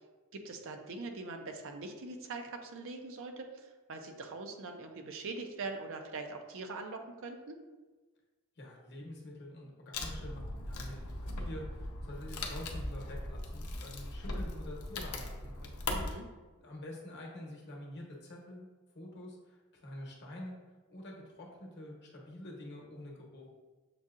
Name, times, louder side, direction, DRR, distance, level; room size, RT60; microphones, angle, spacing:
voice 1, 0.3-7.6 15.9-16.3, right 3 dB, 60° right, 5 dB, 0.5 m, -42 dB
voice 2, 8.6-15.9 16.6-18.7 18.9-20.6 20.9-23.4, left 1 dB, 50° left, -1 dB, 0.9 m, -47 dB
Wood, 9.9-16.1, left 2 dB, 85° left, 0.6 m, -39 dB
6.7 x 2.7 x 2.4 m, 1.3 s
head